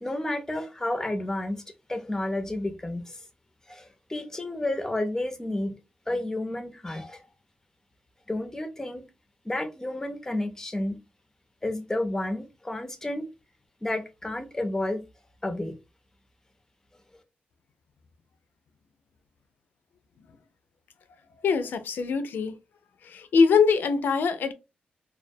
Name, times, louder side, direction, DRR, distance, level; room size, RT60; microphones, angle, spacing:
voice 1, 0.0-1.6 1.9-3.2 3.7-5.7 6.1-7.2 8.3-9.1 9.4-11.0 11.6-13.3 13.8-15.0 15.4-15.7, left 1 dB, 15° left, 0.5 m, -31 dB
voice 2, 21.4-22.5 23.0-24.5, left 5 dB, 75° left, 0.4 m, -23 dB
2.2 x 2.1 x 2.6 m
cardioid pair, 85°, 3 cm